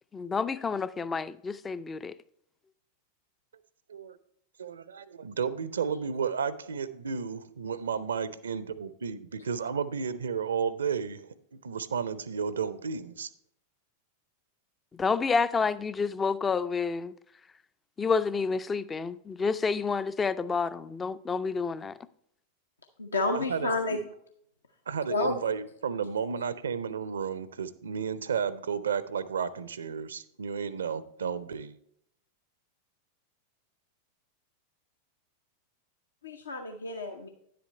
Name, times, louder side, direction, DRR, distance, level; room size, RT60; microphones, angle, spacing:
voice 1, 0.1-2.1 14.9-17.2 18.0-22.0, left 5 dB, 15° left, 0.3 m, -29 dB
voice 2, 4.6-13.3 23.3-24.0 24.9-31.8, right 6 dB, 70° right, 0.5 m, -33 dB
voice 3, 23.0-24.0 25.1-25.4 36.2-37.3, left 2 dB, 75° left, 0.7 m, -30 dB
10.0 x 7.8 x 3.2 m
figure-of-eight pair, 90°, 0 cm